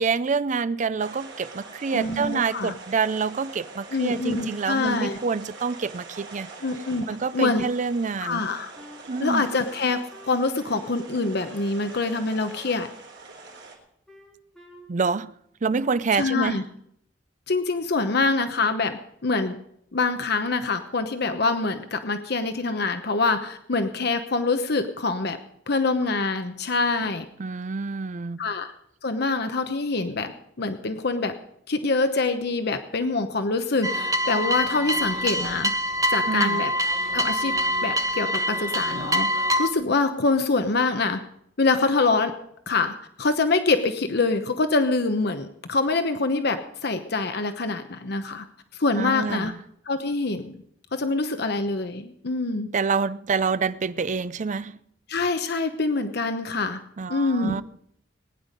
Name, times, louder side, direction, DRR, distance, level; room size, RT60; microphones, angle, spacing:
voice 1, 0.0-6.5 7.1-8.4 9.1-9.5 14.9-15.3 15.6-16.6 27.0-27.1 27.4-28.4 36.3-36.6 49.0-49.6 52.7-54.8 57.0-57.6, right 5 dB, 40° right, 0.5 m, -27 dB
sound 1, 1.0-13.8, right 3 dB, 70° right, 3.8 m, -44 dB
voice 2, 1.9-2.7 3.9-5.2 6.6-7.0 7.3-7.7 8.2-8.7 9.2-10.0 10.3-12.9 16.2-16.6 17.5-19.6 19.9-25.4 25.7-27.2 28.4-28.7 29.0-30.3 30.6-31.3 31.7-35.7 36.1-36.7 37.1-37.5 37.8-41.2 41.6-42.3 42.7-48.4 48.7-49.5 49.9-50.6 50.9-52.7 55.1-56.8 57.1-57.6, left 3 dB, 60° left, 1.0 m, -25 dB
Wind instrument woodwind instrument, 8.8-12.2 12.5-13.6 14.1-15.4 15.7-16.1, left 1 dB, 5° left, 3.6 m, -49 dB
sound 2, 33.8-39.7, equal, 20° right, 0.9 m, -25 dB
19.5 x 10.0 x 5.2 m
head